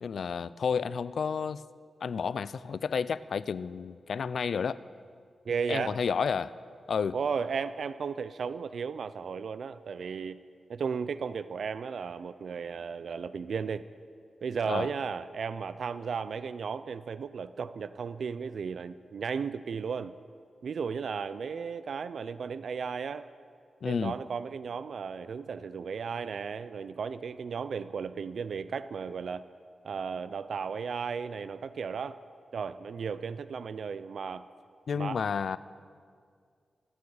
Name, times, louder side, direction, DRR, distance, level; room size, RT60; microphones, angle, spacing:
voice 1, 0.0-1.6 2.0-4.8 5.7-6.5 6.9-7.2 14.7-14.9 23.8-24.2 34.9-35.6, left 6 dB, 70° left, 17 dB, 0.4 m, -31 dB
voice 2, 5.5-6.0 7.1-10.4 10.7-13.8 14.4-20.1 20.6-23.2 23.9-29.4 29.8-32.2 32.5-34.5 34.9-35.2, right 6 dB, 75° right, 13 dB, 0.4 m, -35 dB
26.0 x 9.4 x 4.9 m, 2.2 s
wide cardioid pair, 105°, 0 cm